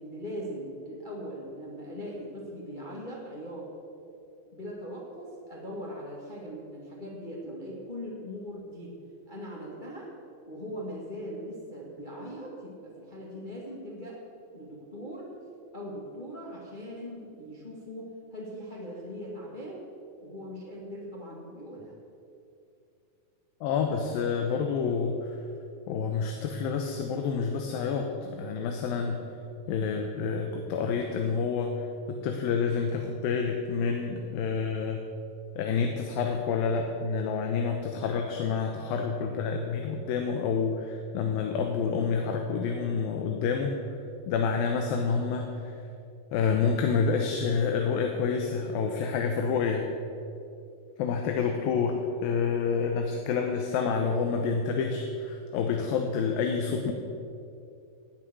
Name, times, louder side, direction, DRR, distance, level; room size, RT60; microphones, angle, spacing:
voice 1, 0.0-3.7 4.5-9.0 9.3-10.1 10.5-14.2 14.5-15.3 15.7-19.8 20.2-22.0, equal, 20° left, -4 dB, 1.7 m, -40 dB
voice 2, 23.6-25.4 25.9-29.2 29.7-35.0 35.6-43.7 44.3-45.8 46.3-49.8 51.0-56.9, left 5 dB, 80° left, 3 dB, 2.7 m, -28 dB
18.0 x 9.4 x 6.3 m, 2.5 s
omnidirectional pair, 4.2 m